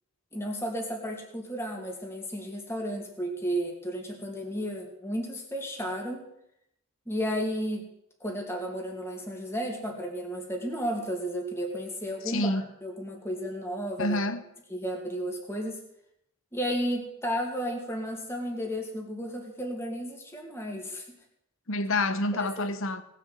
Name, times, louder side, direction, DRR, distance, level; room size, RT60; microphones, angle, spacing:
voice 1, 0.3-6.2 7.1-7.9 8.2-14.2 14.7-15.8 16.5-21.0 22.3-22.7, equal, 10° left, 2.5 m, -33 dB
voice 2, 12.3-12.7 14.0-14.4 21.7-23.0, left 2 dB, 60° left, 1.1 m, -28 dB
18.5 x 7.3 x 7.8 m
head